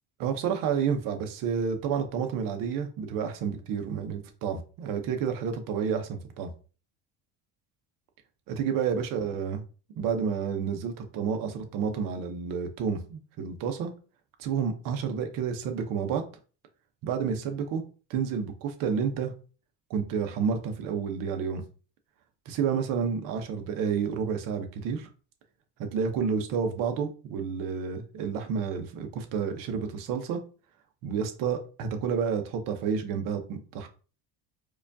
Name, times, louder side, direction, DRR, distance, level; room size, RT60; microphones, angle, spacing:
voice 1, 0.2-6.5 8.5-9.6 10.0-13.9 14.4-16.2 17.0-17.8 18.1-19.3 19.9-21.6 22.5-25.1 25.9-30.4 31.0-33.9, right 6 dB, 65° right, 6 dB, 0.8 m, -30 dB
4.8 x 2.4 x 2.6 m, 0.37 s
cardioid pair, 130°, 36 cm